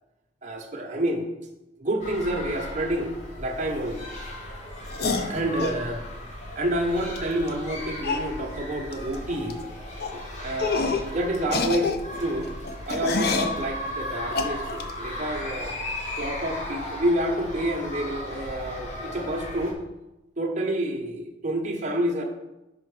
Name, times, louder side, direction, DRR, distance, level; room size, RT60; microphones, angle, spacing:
voice 1, 0.4-1.3 1.8-3.1 3.4-4.0 5.3-6.0 6.5-9.6 10.1-11.9 12.2-12.5 12.9-15.7 16.2-19.8 20.4-22.2, right 1 dB, 40° right, 1 dB, 0.9 m, -28 dB
sound 1, 2.0-19.7, left 1 dB, 35° left, 1.0 m, -36 dB
sound 2, 4.9-5.8 7.2-7.3 7.5-7.6 8.0-8.3 8.9-9.2 9.4-9.6 10.0-10.2 10.6-11.1 11.4-13.6 14.3-14.9, left 4 dB, 55° left, 0.5 m, -27 dB
6.0 x 4.6 x 4.8 m, 0.98 s
head